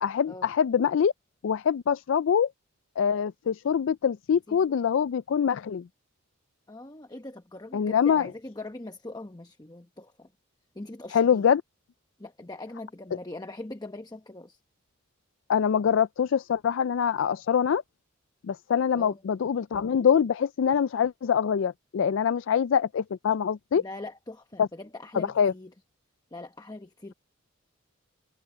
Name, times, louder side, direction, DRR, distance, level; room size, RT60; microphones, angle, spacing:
voice 1, 0.0-1.1 1.4-2.5 3.0-5.8 7.7-8.3 11.1-11.6 15.5-17.8 18.4-23.8 24.6-24.7 25.4-25.5, left 7 dB, 65° left, 0.3 m, -24 dB
voice 2, 4.5-4.8 6.7-10.3 10.7-11.5 12.2-14.6 18.9-19.2 23.8-25.7 26.3-27.1, left 2 dB, 20° left, 0.9 m, -42 dB
head